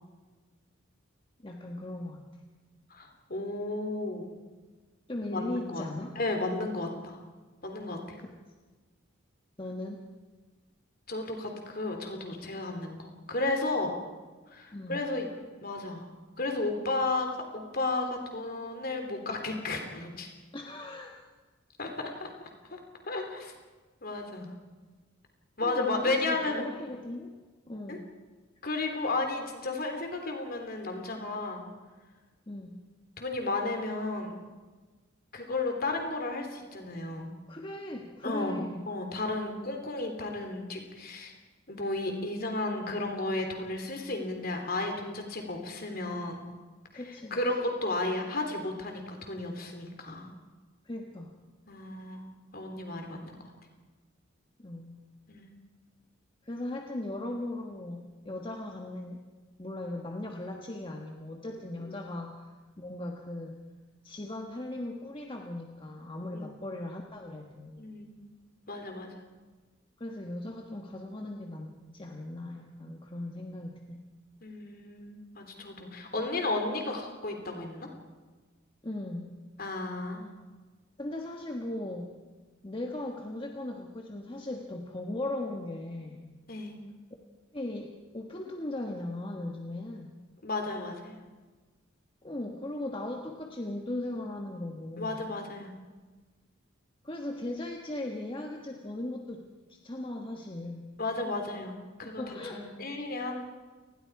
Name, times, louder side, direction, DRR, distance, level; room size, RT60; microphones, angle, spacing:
voice 1, 1.4-2.2 5.1-6.2 8.2-8.3 9.6-10.0 14.7-15.0 20.5-21.2 25.6-27.3 27.7-28.0 32.5-32.8 37.5-38.8 46.9-47.4 50.8-51.3 54.6-55.0 56.4-59.2 59.6-62.5 62.8-63.6 64.0-67.8 70.0-74.0 78.8-79.3 81.0-82.1 82.6-86.3 87.5-87.9 88.1-90.2 92.2-95.3 97.0-99.4 99.7-100.9 102.0-102.6, left 1 dB, 25° left, 1 dB, 1.4 m, -38 dB
voice 2, 2.9-4.3 5.3-5.8 6.2-7.2 7.6-8.2 11.1-13.9 14.5-15.3 15.6-16.1 16.4-20.3 21.8-22.3 22.7-22.8 23.1-23.5 24.0-24.5 25.6-26.7 27.9-28.0 28.6-31.6 33.2-34.3 35.3-37.3 38.2-41.3 41.7-46.4 46.9-47.0 47.3-50.3 51.7-52.2 52.5-53.5 55.3-55.5 61.8-62.0 66.3-66.5 67.8-68.1 68.7-69.1 74.4-77.9 79.6-80.3 86.5-86.8 90.4-91.2 95.0-95.7 101.0-103.5, left 2 dB, 50° left, 4 dB, 3.4 m, -33 dB
28.5 x 20.0 x 4.8 m, 1.3 s
head